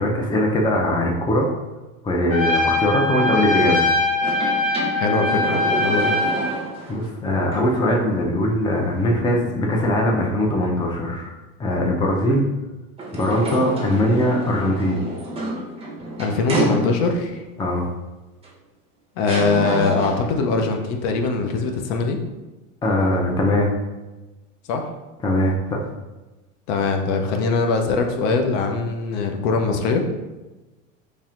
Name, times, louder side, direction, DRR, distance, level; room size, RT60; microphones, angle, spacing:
voice 1, 0.0-1.5 2.0-3.9 6.9-11.3 11.6-12.4 13.1-15.0 17.6-17.9 22.8-23.7 25.2-25.8, left 1 dB, 10° left, 0 dB, 0.5 m, -21 dB
Trumpet, 2.3-6.6, left 2 dB, 90° left, 1.5 m, -22 dB
sound 1, 4.2-7.1 7.5-7.6 13.0-17.3 18.4-18.5 19.2-20.4, right 1 dB, 15° right, 0.9 m, -28 dB
voice 2, 4.9-6.2 16.2-17.4 19.2-22.2 24.7-24.8 26.7-30.0, left 4 dB, 60° left, 4 dB, 0.7 m, -22 dB
4.2 x 3.3 x 2.4 m, 1.1 s
hypercardioid pair, 100°, 39 cm